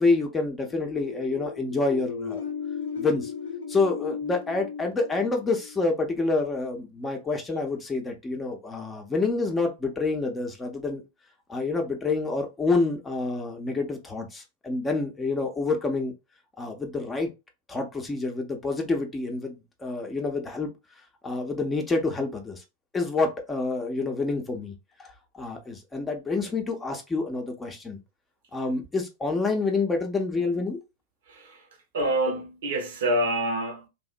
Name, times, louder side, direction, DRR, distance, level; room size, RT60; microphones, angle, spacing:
voice 1, 0.0-2.4 3.0-3.3 3.7-11.0 11.5-16.1 16.6-17.3 17.7-20.7 21.2-22.6 22.9-24.7 25.0-28.0 28.5-30.8, left 3 dB, 15° left, 0.6 m, -27 dB
sound 1, 0.6-6.3, left 6 dB, 65° left, 0.4 m, -36 dB
voice 2, 31.3-31.6 31.9-33.9, right 1 dB, 60° right, 0.7 m, -27 dB
2.7 x 2.0 x 2.4 m
figure-of-eight pair, 90°, 0 cm